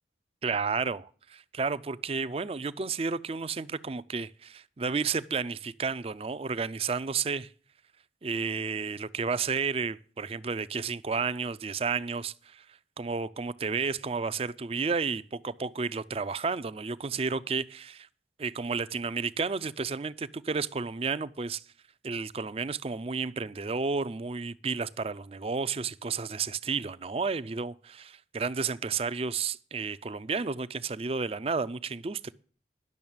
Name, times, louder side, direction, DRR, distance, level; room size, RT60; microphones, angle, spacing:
voice 1, 0.4-7.5 8.2-12.7 13.0-18.1 18.4-21.6 22.0-32.3, right 5 dB, 35° right, 0.4 m, -32 dB
11.0 x 6.5 x 8.7 m
head